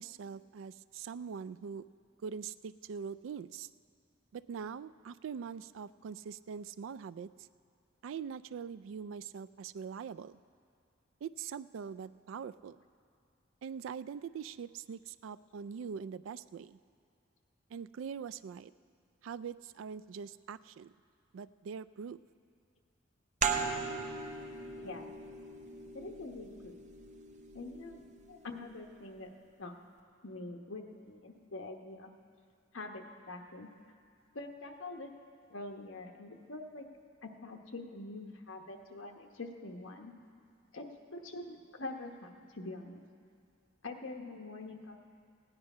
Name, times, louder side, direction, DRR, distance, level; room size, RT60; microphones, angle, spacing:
voice 1, 0.0-1.9 2.2-3.7 4.3-7.5 8.0-10.4 11.2-12.8 13.6-16.8 17.7-18.7 19.2-20.9 21.3-22.2, right 6 dB, 70° right, 17 dB, 0.3 m, -43 dB
sound 1, 23.4-28.7, right 5 dB, 35° right, 0.7 m, -38 dB
voice 2, 25.9-26.8 27.5-28.0 28.3-29.3 29.6-29.7 30.2-32.1 32.7-33.7 34.3-35.1 35.5-36.9 37.2-40.1 40.7-43.0 43.8-45.0, left 2 dB, 75° left, 2 dB, 1.1 m, -45 dB
16.0 x 9.7 x 5.5 m, 2.4 s
head